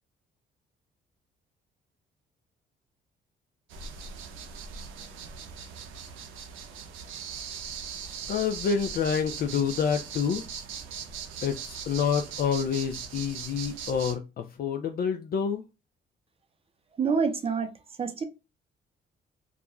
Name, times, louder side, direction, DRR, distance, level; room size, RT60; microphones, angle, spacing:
sound 1, 3.7-14.2, right 7 dB, 90° right, 0.5 m, -40 dB
voice 1, 8.3-10.4 11.4-15.6, left 7 dB, 50° left, 0.4 m, -28 dB
voice 2, 17.0-17.7 18.0-18.2, right 5 dB, 30° right, 0.6 m, -26 dB
2.4 x 2.2 x 2.9 m
cardioid pair, 90°, 20 cm